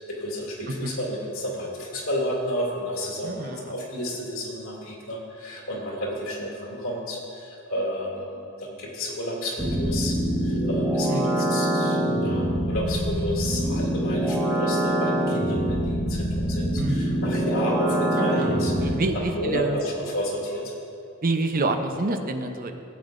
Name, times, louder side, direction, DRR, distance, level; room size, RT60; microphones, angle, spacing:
voice 1, 0.0-20.7, equal, 75° left, -4 dB, 2.5 m, -31 dB
voice 2, 3.2-3.8 11.1-11.5 16.8-17.2 18.2-19.8 21.2-22.7, right 2 dB, 45° right, 6 dB, 0.7 m, -28 dB
sound 1, 9.6-19.0, right 1 dB, 10° right, 1.2 m, -25 dB
18.0 x 8.5 x 2.6 m, 2.6 s
head